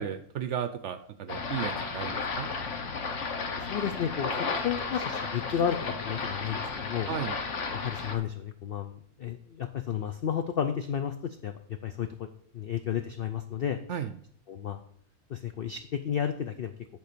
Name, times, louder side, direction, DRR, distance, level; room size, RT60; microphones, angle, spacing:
voice 1, 0.0-2.5 7.1-7.4 13.9-14.1, right 8 dB, 65° right, 10 dB, 0.8 m, -34 dB
sound 1, 1.3-8.2, left 4 dB, 55° left, 1.3 m, -33 dB
voice 2, 3.6-7.1 7.7-12.3 12.5-13.8 14.5-14.8 15.3-16.7, left 8 dB, 75° left, 8 dB, 0.5 m, -32 dB
10.5 x 3.9 x 6.7 m, 0.63 s
omnidirectional pair, 1.6 m